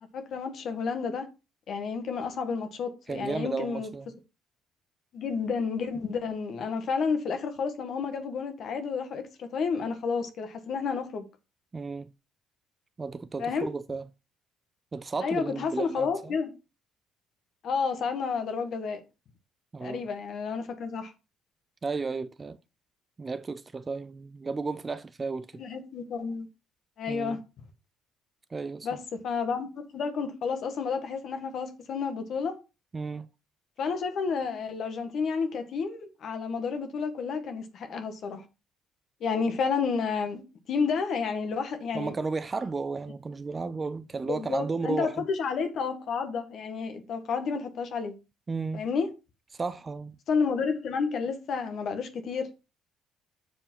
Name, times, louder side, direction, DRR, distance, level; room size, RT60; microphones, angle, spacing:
voice 1, 0.1-1.3 1.7-3.9 5.1-11.3 13.4-13.7 15.2-16.5 17.6-19.0 19.8-21.1 25.6-26.5 27.0-27.4 28.8-32.5 33.8-38.4 39.2-40.4 40.7-42.1 44.2-48.1 48.7-49.1 50.3-52.5, left 5 dB, 50° left, 1.6 m, -30 dB
voice 2, 3.1-4.1 11.7-12.1 13.0-14.0 14.9-16.4 19.7-20.0 21.8-22.6 23.2-25.6 27.1-27.4 28.5-28.9 32.9-33.3 41.9-45.3 48.5-48.8 49.5-50.2, right 4 dB, 20° right, 0.4 m, -33 dB
6.8 x 5.1 x 5.5 m
cardioid pair, 165°, 0 cm